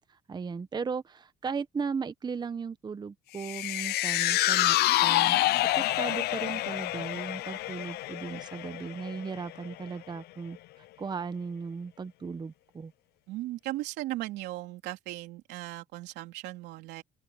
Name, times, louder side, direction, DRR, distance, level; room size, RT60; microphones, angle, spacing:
voice 1, 0.0-5.4 5.7-12.9, right 5 dB, 25° right, 0.9 m, -37 dB
sound 1, 3.4-9.8 10.2-10.3, left 17 dB, 75° left, 0.5 m, -28 dB
voice 2, 13.3-17.0, right 16 dB, 90° right, 3.3 m, -37 dB
open air
cardioid pair, 110°, 17 cm